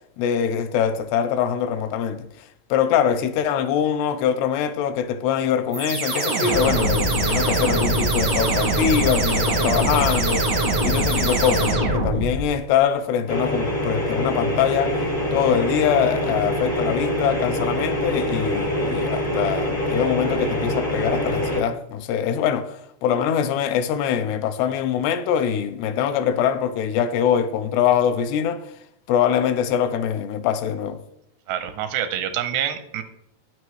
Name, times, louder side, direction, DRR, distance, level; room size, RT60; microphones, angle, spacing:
voice 1, 0.2-2.3 2.7-15.0 15.3-28.6 29.1-31.0, left 8 dB, 85° left, 2.6 m, -23 dB
sound 1, 5.7-12.5, right 1 dB, 65° right, 0.9 m, -22 dB
sound 2, 13.3-21.6, equal, 65° left, 0.8 m, -25 dB
voice 2, 31.5-33.0, right 10 dB, 85° right, 2.9 m, -26 dB
9.2 x 9.1 x 3.1 m
omnidirectional pair, 4.8 m